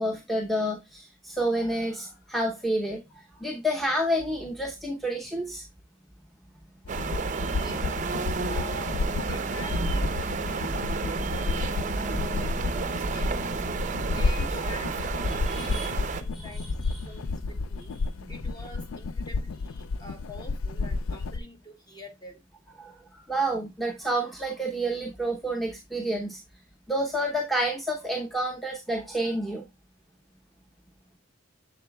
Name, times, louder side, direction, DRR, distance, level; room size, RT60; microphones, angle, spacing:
voice 1, 0.0-5.6 15.3-15.9 16.3-17.2 18.2-18.5 22.8-26.4 26.9-29.6, right 1 dB, ahead, 0 dB, 0.7 m, -29 dB
sound 1, 6.9-21.4, left 3 dB, 85° left, 0.4 m, -31 dB
sound 2, 6.9-16.2, right 4 dB, 35° right, 0.5 m, -30 dB
voice 2, 7.6-8.0 8.5-9.0 9.3-10.8 11.1-13.6 14.0-16.7 17.0-17.9 18.3-22.4, left 1 dB, 20° left, 5 dB, 1.1 m, -45 dB
7.3 x 7.0 x 2.2 m, 0.22 s
head